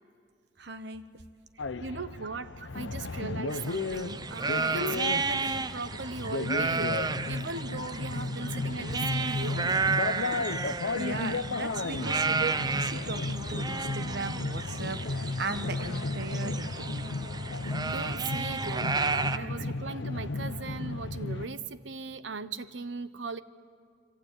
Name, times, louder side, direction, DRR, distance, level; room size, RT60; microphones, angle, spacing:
voice 1, 0.6-1.1 2.6-2.7 8.4-8.5 10.2-17.0 19.3-19.5, right 3 dB, 65° right, 1.4 m, -38 dB
sound 1, 1.6-21.5, left 3 dB, 80° left, 0.8 m, -34 dB
voice 2, 1.8-9.9 17.9-23.4, right 4 dB, 85° right, 1.0 m, -38 dB
sound 2, 3.5-19.4, right 4 dB, 20° right, 0.7 m, -32 dB
25.5 x 24.5 x 9.2 m
head